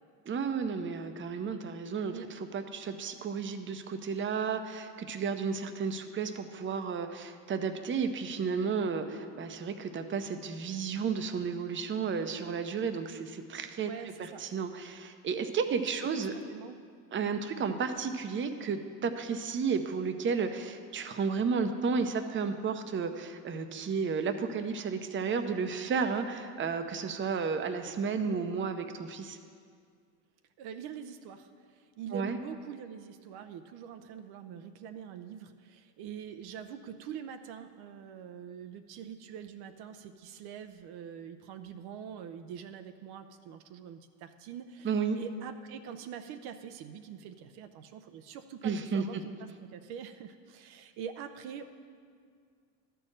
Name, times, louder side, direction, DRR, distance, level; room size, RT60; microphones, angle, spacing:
voice 1, 0.3-13.9 14.2-16.3 17.1-29.4 32.1-32.4 44.8-45.2 48.6-49.0, right 5 dB, 30° right, 7 dB, 0.7 m, -32 dB
voice 2, 13.8-14.4 16.3-16.8 28.3-28.5 30.6-49.3 49.6-51.7, right 8 dB, 70° right, 8 dB, 0.7 m, -44 dB
12.0 x 4.6 x 7.4 m, 2.1 s
supercardioid pair, 90°, 40 cm